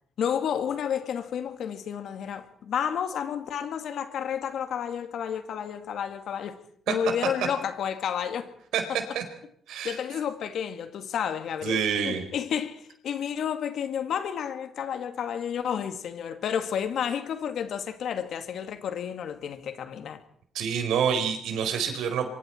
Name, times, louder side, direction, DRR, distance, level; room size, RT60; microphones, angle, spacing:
voice 1, 0.2-6.6 6.9-8.5 8.9-9.0 9.8-20.2, left 8 dB, 70° left, 2.2 m, -31 dB
voice 2, 9.7-10.0 11.6-12.2 20.5-22.3, right 7 dB, 85° right, 4.2 m, -27 dB
24.5 x 24.5 x 4.5 m
cardioid pair, 90°, 0 cm